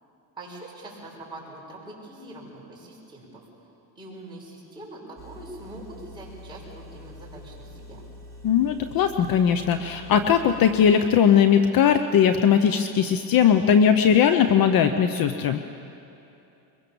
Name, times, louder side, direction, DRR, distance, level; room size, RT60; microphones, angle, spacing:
voice 1, 0.4-3.5 3.9-8.0, right 1 dB, 10° right, -5 dB, 6.4 m, -43 dB
Engine, 5.2-10.9, left 1 dB, 5° left, 2.5 m, -45 dB
voice 2, 8.4-15.6, left 8 dB, 45° left, 9 dB, 0.9 m, -19 dB
23.5 x 22.0 x 7.1 m, 2.8 s
cardioid pair, 135°, 47 cm